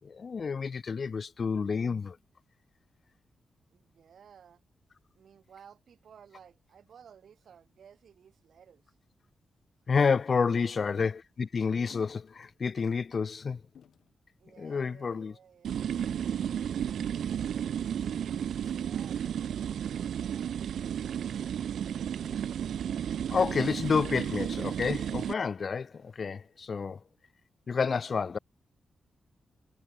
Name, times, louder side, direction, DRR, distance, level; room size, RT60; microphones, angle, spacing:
voice 1, 0.0-2.2 9.9-13.6 14.6-15.3 23.3-27.0 27.7-28.4, left 5 dB, 50° left, 0.5 m, -29 dB
voice 2, 3.7-4.6 5.1-9.0 10.4-10.7 14.4-15.8 18.7-19.5 20.0-20.6, right 8 dB, 75° right, 3.3 m, -56 dB
sound 1, 11.9-12.3 12.8-13.0 13.7-14.1 14.9-15.2 16.0-16.9 18.3-18.8, left 8 dB, 80° left, 5.3 m, -57 dB
sound 2, 15.6-25.3, right 9 dB, 90° right, 0.4 m, -33 dB
cardioid pair, 100°, 0 cm